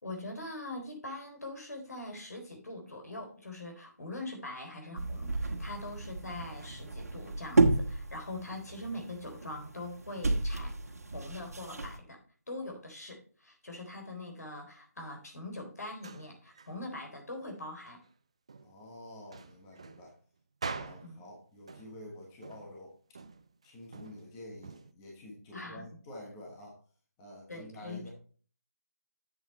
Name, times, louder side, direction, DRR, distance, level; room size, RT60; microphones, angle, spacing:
voice 1, 0.0-10.7 11.1-12.2 12.5-18.0 21.0-21.2 25.5-25.8 27.5-28.1, left 2 dB, 75° left, 2 dB, 3.7 m, -42 dB
sound 1, 4.9-12.0, right 3 dB, 65° right, 1.6 m, -32 dB
sound 2, 15.8-16.8 17.5-18.1 18.5-18.8 19.3-21.4 21.7-22.1 22.4-22.8 23.1-24.9, right 4 dB, 20° right, 0.3 m, -45 dB
voice 2, 18.6-20.2 20.7-23.0 23.6-26.8 27.2-28.1, left 1 dB, 10° left, -3 dB, 1.3 m, -48 dB
7.7 x 7.1 x 4.2 m, 0.42 s
figure-of-eight pair, 170°, 9 cm